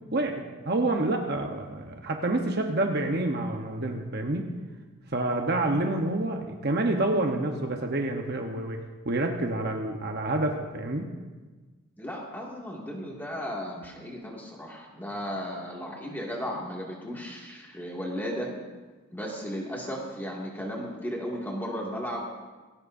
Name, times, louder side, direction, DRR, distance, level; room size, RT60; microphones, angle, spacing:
voice 1, 0.1-4.5 5.1-8.8 9.0-11.1, right 2 dB, 45° right, 3 dB, 1.0 m, -28 dB
voice 2, 12.0-18.5 19.1-22.2, equal, 10° left, -3 dB, 2.2 m, -35 dB
19.0 x 17.0 x 2.7 m, 1.3 s
head